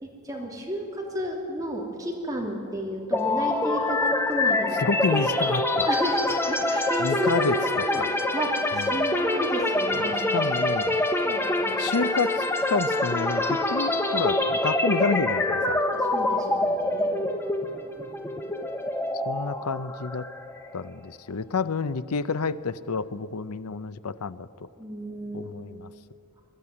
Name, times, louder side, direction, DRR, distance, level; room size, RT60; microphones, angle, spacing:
voice 1, 0.0-4.9 5.9-8.1 8.3-10.4 11.1-11.8 15.9-17.1 24.8-25.6, equal, 15° right, -1 dB, 2.8 m, -32 dB
sound 1, 3.1-20.9, left 2 dB, 10° left, 1.1 m, -26 dB
voice 2, 4.8-5.9 7.0-7.5 7.9-8.1 8.7-8.9 10.0-11.0 11.8-15.8 19.3-20.2 20.7-24.5 25.3-25.9, left 4 dB, 85° left, 15 dB, 0.7 m, -29 dB
22.0 x 12.5 x 9.8 m, 2.6 s
head